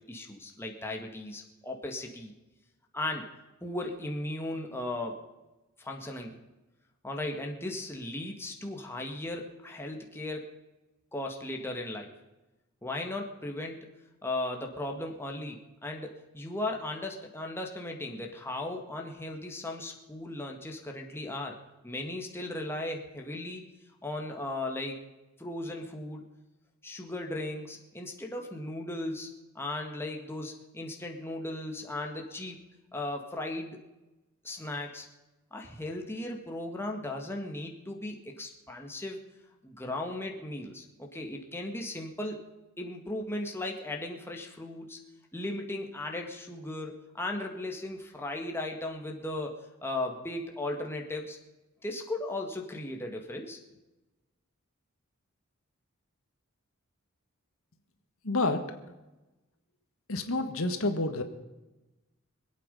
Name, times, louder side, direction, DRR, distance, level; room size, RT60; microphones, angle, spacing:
voice 1, 0.0-2.3 2.9-3.3 3.6-5.2 5.8-6.4 7.0-10.5 11.1-12.1 12.8-13.8 14.2-21.6 21.8-23.6 24.0-25.0 25.4-26.2 26.8-32.6 32.9-33.8 34.4-35.1 35.5-39.2 39.6-42.4 42.8-45.0 45.3-49.5 49.8-51.4 51.8-53.6, left 1 dB, 10° left, 1 dB, 1.9 m, -36 dB
voice 2, 58.2-58.6 60.1-61.2, left 2 dB, 70° left, 7 dB, 1.6 m, -28 dB
26.0 x 8.7 x 5.4 m, 1.0 s
head